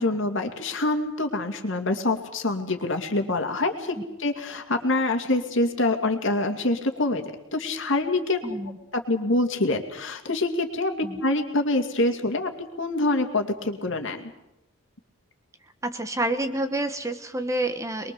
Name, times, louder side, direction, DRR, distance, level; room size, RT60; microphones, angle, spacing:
voice 1, 0.0-7.2 7.5-8.4 9.1-12.5 12.8-14.3, left 2 dB, 60° left, 5 dB, 2.5 m, -25 dB
voice 2, 8.4-8.8 11.0-11.2 15.8-18.1, right 1 dB, 15° right, 7 dB, 1.2 m, -28 dB
24.0 x 22.0 x 7.0 m, 0.88 s
head